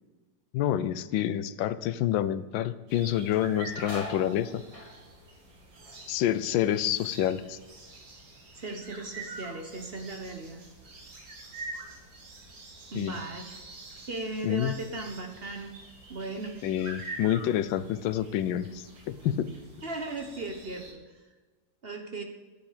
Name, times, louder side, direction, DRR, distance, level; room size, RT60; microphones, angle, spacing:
voice 1, 0.5-4.6 6.1-7.6 12.9-13.2 14.4-14.7 16.6-19.5, left 11 dB, 90° left, 15 dB, 1.4 m, -28 dB
sound 1, 2.9-20.9, right 2 dB, 85° right, 2.5 m, -46 dB
sound 2, 3.5-8.7 8.9-9.6 10.0-13.0 13.3-13.4 14.4-14.6 15.0-16.1 16.6-16.8 17.4-18.0 18.3-19.5, left 1 dB, 20° left, 1.4 m, -49 dB
voice 2, 8.5-10.6 12.9-13.4 14.1-15.7 16.1-16.6 19.8-21.2 21.8-22.2, right 2 dB, 40° right, 4 dB, 1.1 m, -37 dB
10.0 x 9.2 x 5.0 m, 1.3 s
omnidirectional pair, 2.0 m